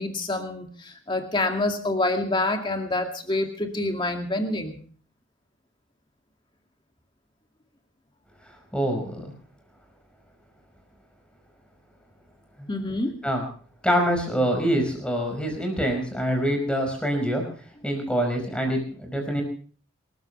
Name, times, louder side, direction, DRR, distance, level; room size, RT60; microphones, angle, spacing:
voice 1, 0.0-4.8 12.7-13.2, left 2 dB, 25° left, 4 dB, 2.3 m, -27 dB
voice 2, 8.7-9.3 12.6-12.7 13.2-13.4 13.8-17.4 17.8-19.4, equal, 5° left, 3 dB, 5.1 m, -25 dB
28.0 x 14.0 x 3.3 m, 0.43 s
head